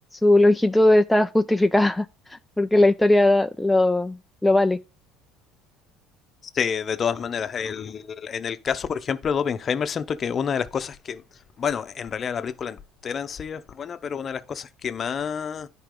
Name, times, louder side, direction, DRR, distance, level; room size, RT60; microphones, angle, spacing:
voice 1, 0.2-2.1 2.6-4.2 4.4-4.8, left 1 dB, 5° left, 0.4 m, -18 dB
voice 2, 6.5-11.2 11.6-15.7, left 7 dB, 35° left, 0.8 m, -28 dB
10.5 x 4.6 x 3.8 m
supercardioid pair, 100°, 0 cm